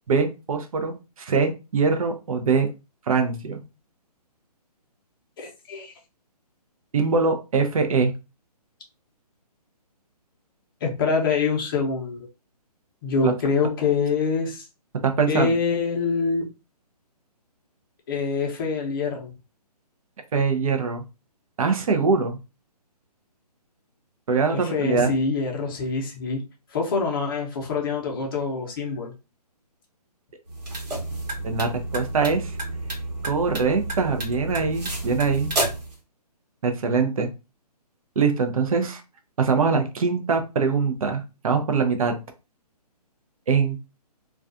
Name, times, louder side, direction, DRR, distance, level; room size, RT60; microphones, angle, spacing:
voice 1, 0.1-1.0 1.3-2.7 3.1-3.6 6.9-8.1 13.2-13.3 15.2-15.5 20.3-21.0 21.6-22.4 24.3-25.1 31.4-32.6 33.2-35.5 36.6-37.3 38.2-39.0 39.4-42.2 43.5-43.8, right 5 dB, 60° right, 6 dB, 0.6 m, -23 dB
voice 2, 5.4-5.9 10.8-12.2 13.0-14.6 15.3-16.5 18.1-19.3 24.5-26.4 26.7-29.1, left 5 dB, 35° left, 0 dB, 0.6 m, -25 dB
sound 1, 30.5-35.9, right 2 dB, 80° right, 1.1 m, -30 dB
2.3 x 2.3 x 2.5 m, 0.28 s
hypercardioid pair, 150°, 21 cm